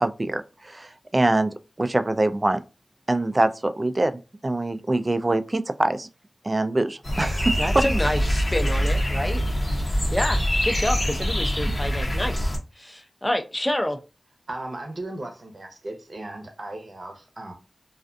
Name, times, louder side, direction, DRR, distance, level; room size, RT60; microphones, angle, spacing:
voice 1, 0.0-1.5 1.8-2.6 3.1-6.1 6.4-7.5, right 2 dB, 40° right, 0.3 m, -24 dB
sound 1, 7.0-12.6, equal, 50° left, 0.8 m, -24 dB
voice 2, 7.6-9.5 10.1-14.0, left 1 dB, 20° left, 0.6 m, -28 dB
voice 3, 14.5-17.5, right 2 dB, 60° right, 0.7 m, -36 dB
2.4 x 2.2 x 2.5 m
cardioid pair, 45°, 0 cm